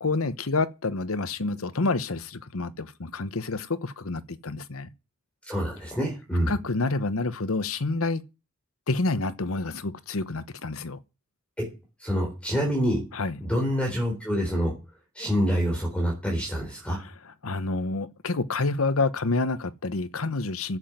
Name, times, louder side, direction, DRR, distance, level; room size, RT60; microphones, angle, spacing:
voice 1, 0.0-4.9 6.5-8.2 8.9-11.0 13.1-13.4 17.2-20.8, left 3 dB, 75° left, 1.0 m, -28 dB
voice 2, 5.5-6.5 11.6-11.7 12.0-13.0 13.4-14.7 15.2-17.0, equal, 5° left, 4.0 m, -26 dB
11.0 x 7.9 x 9.2 m
head